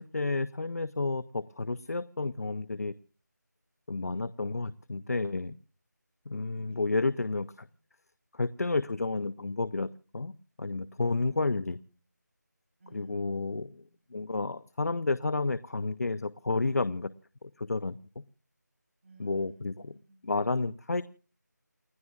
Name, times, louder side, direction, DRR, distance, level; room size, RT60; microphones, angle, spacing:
voice 1, 0.0-2.9 3.9-5.6 6.3-7.5 8.3-10.3 10.6-11.8 12.9-13.7 14.1-17.1 17.6-18.0 19.2-19.7 20.2-21.0, left 3 dB, 55° left, 16 dB, 0.6 m, -31 dB
voice 2, 6.5-7.8 11.0-12.0 12.8-14.0 19.0-20.3, right 1 dB, 40° right, 3 dB, 4.1 m, -57 dB
29.5 x 12.0 x 2.4 m, 0.40 s
figure-of-eight pair, 175°, 10 cm